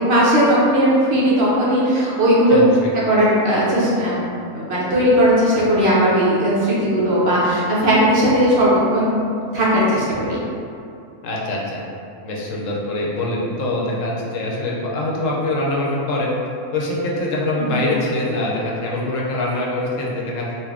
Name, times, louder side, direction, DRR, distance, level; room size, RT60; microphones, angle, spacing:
voice 1, 0.0-2.6 3.1-4.2 4.5-9.2 9.5-10.4 17.6-17.8, equal, 50° right, -8 dB, 1.1 m, -17 dB
voice 2, 2.5-2.9 11.2-11.8 12.2-16.3 16.7-20.5, left 1 dB, 70° left, -3 dB, 1.0 m, -24 dB
4.1 x 2.2 x 3.5 m, 2.6 s
omnidirectional pair, 1.5 m